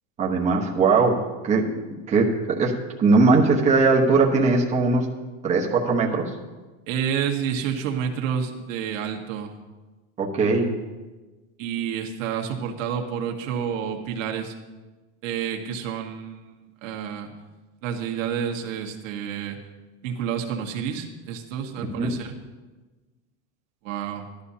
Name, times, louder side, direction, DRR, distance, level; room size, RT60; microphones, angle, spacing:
voice 1, 0.2-1.7 2.1-5.1 5.4-6.3 10.2-10.8 22.0-22.1, right 3 dB, 20° right, -2 dB, 1.1 m, -20 dB
voice 2, 6.9-9.5 11.6-14.5 15.2-17.3 17.8-19.6 20.0-22.3 23.8-24.2, right 8 dB, 85° right, 2 dB, 1.6 m, -29 dB
14.5 x 12.0 x 2.8 m, 1.2 s
supercardioid pair, 170°, 38 cm